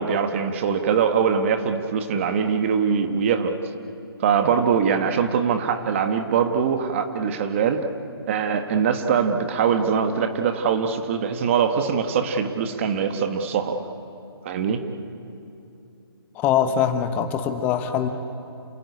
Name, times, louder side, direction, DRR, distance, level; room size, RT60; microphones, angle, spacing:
voice 1, 0.0-3.5 4.2-7.9 8.3-13.8 14.4-14.8, right 6 dB, 30° right, 7 dB, 1.5 m, -22 dB
voice 2, 16.3-18.1, left 8 dB, 15° left, 8 dB, 1.1 m, -22 dB
28.5 x 17.0 x 9.9 m, 2.7 s
hypercardioid pair, 160°, 13 cm